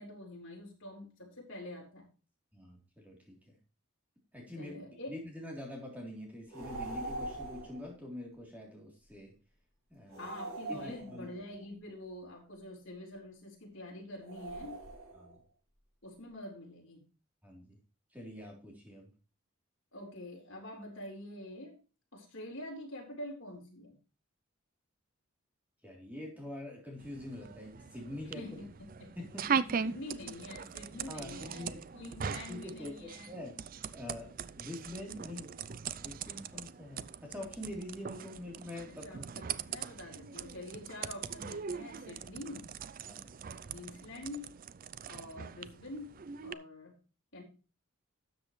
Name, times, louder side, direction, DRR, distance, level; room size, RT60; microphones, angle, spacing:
voice 1, 0.0-2.1 4.6-5.1 10.2-14.8 16.0-17.0 19.9-21.8 22.1-24.0 28.3-28.7 29.0-29.1 29.8-31.7 31.9-33.4 38.9-42.7 43.5-44.5 45.1-46.1 46.4-47.0 47.3-47.4, left 1 dB, 60° left, -1 dB, 4.1 m, -46 dB
voice 2, 2.5-3.6 4.3-4.8 5.1-9.3 9.9-10.2 10.7-11.3 15.1-15.4 17.4-17.8 18.1-19.1 25.8-28.6 29.2-30.0 31.1-31.8 32.2-33.6 33.9-35.5 36.0-39.6 43.0-43.3, left 1 dB, 5° right, -2 dB, 3.4 m, -45 dB
sound 1, 6.5-7.8 10.1-11.5 14.2-15.4, right 2 dB, 70° right, 3.1 m, -42 dB
sound 2, 27.0-46.5, right 6 dB, 40° right, 0.4 m, -41 dB
12.5 x 7.7 x 3.2 m, 0.34 s
head